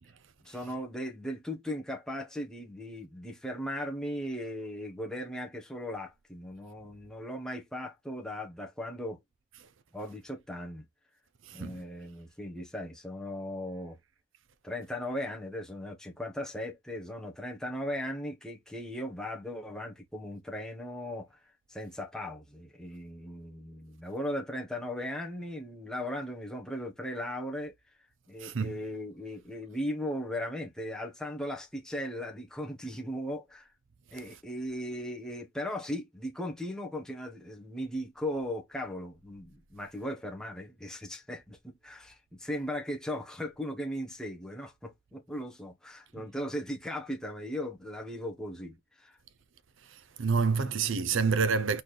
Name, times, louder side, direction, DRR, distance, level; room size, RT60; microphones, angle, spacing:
voice 1, 0.4-9.2 9.9-10.8 11.5-14.0 14.6-21.4 21.7-27.7 28.3-33.7 34.1-49.1 50.6-50.7, left 1 dB, 5° left, 1.1 m, -37 dB
voice 2, 11.5-11.8 28.4-28.8 49.9-51.8, right 5 dB, 70° right, 0.6 m, -28 dB
4.2 x 3.9 x 3.2 m
head